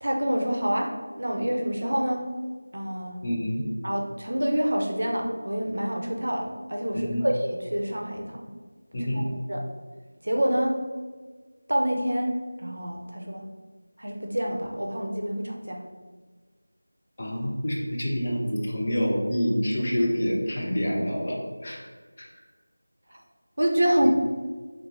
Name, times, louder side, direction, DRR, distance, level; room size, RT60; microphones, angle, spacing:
voice 1, 0.0-2.2 2.7-3.2 3.8-8.5 9.0-9.2 9.5-9.6 10.2-10.7 11.7-12.3 12.6-13.4 14.0-15.8 23.1-23.2 23.6-24.1, equal, 65° right, 1 dB, 0.5 m, -27 dB
voice 2, 3.2-3.7 6.9-7.3 8.9-9.3 17.2-21.9 22.2-22.3 24.0-24.1, equal, 20° left, -3 dB, 0.4 m, -27 dB
3.3 x 2.6 x 3.0 m, 1.4 s
figure-of-eight pair, 180°, 0 cm